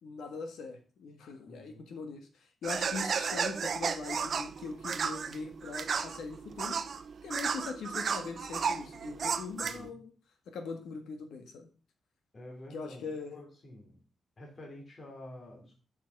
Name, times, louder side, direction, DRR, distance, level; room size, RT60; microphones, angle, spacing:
voice 1, 0.0-2.3 2.6-6.8 7.2-10.1 10.5-11.7 12.7-13.4, left 4 dB, 90° left, 6 dB, 1.8 m, -41 dB
voice 2, 1.5-1.9 9.5-10.0 12.3-14.0 14.4-15.7, left 1 dB, 45° left, 0 dB, 3.3 m, -49 dB
sound 1, 2.6-9.9, right 6 dB, 65° right, 0.7 m, -34 dB
6.8 x 6.2 x 6.0 m, 0.37 s
cardioid pair, 75°, 0 cm